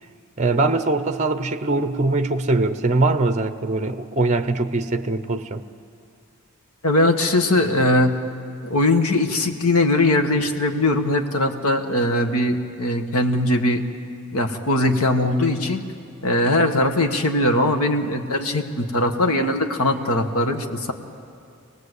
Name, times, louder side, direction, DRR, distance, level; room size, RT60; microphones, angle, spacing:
voice 1, 0.4-5.6, right 2 dB, 30° right, 10 dB, 0.7 m, -22 dB
voice 2, 6.8-8.2 8.7-13.8 14.3-15.8 16.2-20.9, left 1 dB, 80° left, 5 dB, 1.6 m, -20 dB
26.5 x 18.5 x 8.2 m, 2.4 s
head